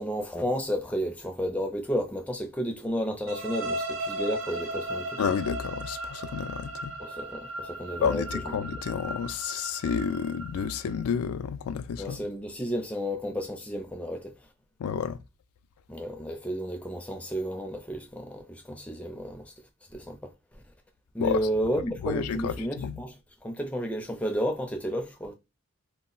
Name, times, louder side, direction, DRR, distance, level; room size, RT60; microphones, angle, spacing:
voice 1, 0.0-5.2 7.0-8.6 12.0-14.3 15.9-19.5 19.9-20.6 21.1-23.1 23.4-25.4, equal, 5° left, 0.4 m, -32 dB
sound 1, 3.3-11.1, right 1 dB, 60° right, 0.6 m, -36 dB
voice 2, 5.2-6.9 8.0-12.2 14.8-15.2 21.2-21.5 22.0-23.0, left 7 dB, 85° left, 0.3 m, -30 dB
2.2 x 2.0 x 3.8 m
head